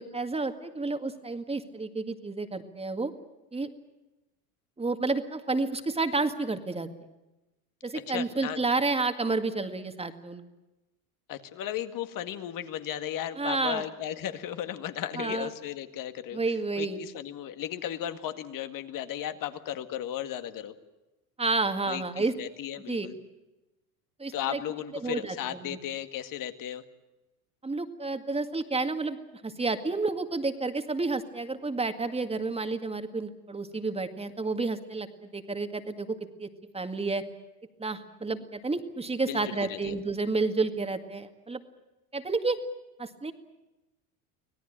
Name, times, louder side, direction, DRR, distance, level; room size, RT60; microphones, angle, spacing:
voice 1, 0.0-3.1 3.5-3.7 4.8-6.9 7.8-10.4 13.4-13.8 15.2-15.5 16.3-17.0 21.4-22.3 22.9-23.1 24.2-24.6 25.0-25.8 27.6-29.2 29.4-37.2 37.8-41.6 42.1-42.6 43.0-43.3, right 3 dB, 15° right, 8 dB, 2.0 m, -30 dB
voice 2, 7.9-8.6 11.3-16.4 16.8-20.7 21.9-23.2 24.3-26.8 39.3-40.0, left 11 dB, 50° left, 9 dB, 2.0 m, -35 dB
25.5 x 17.5 x 9.0 m, 1.0 s
supercardioid pair, 95°, 42 cm